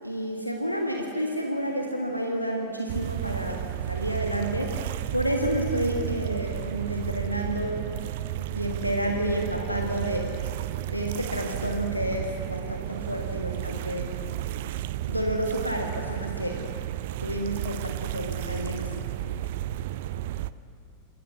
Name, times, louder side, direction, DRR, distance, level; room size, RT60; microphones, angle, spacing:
voice 1, 0.0-7.9 8.5-10.3 10.9-14.3 15.1-16.6 17.2-19.0, equal, 90° left, 2 dB, 1.5 m, -30 dB
sound 1, 2.9-20.5, right 13 dB, 55° right, 0.5 m, -32 dB
27.0 x 14.0 x 8.2 m, 2.7 s
figure-of-eight pair, 90°, 0 cm